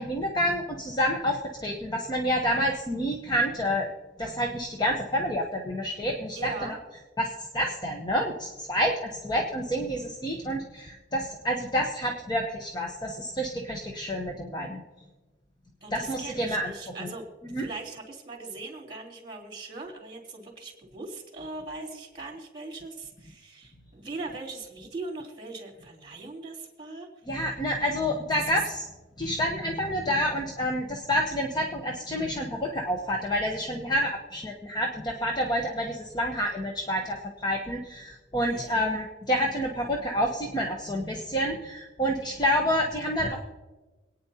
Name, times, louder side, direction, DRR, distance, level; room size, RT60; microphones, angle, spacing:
voice 1, 0.0-3.9 4.2-6.8 7.2-14.8 15.9-16.7 17.0-17.1 17.5-17.7 27.3-28.8 29.2-43.4, equal, 25° left, 0 dB, 0.9 m, -28 dB
voice 2, 6.3-6.8 15.8-17.2 17.5-27.1 28.3-28.4 38.5-38.7, right 3 dB, 25° right, -1 dB, 3.4 m, -40 dB
26.5 x 9.4 x 2.8 m, 1.2 s
head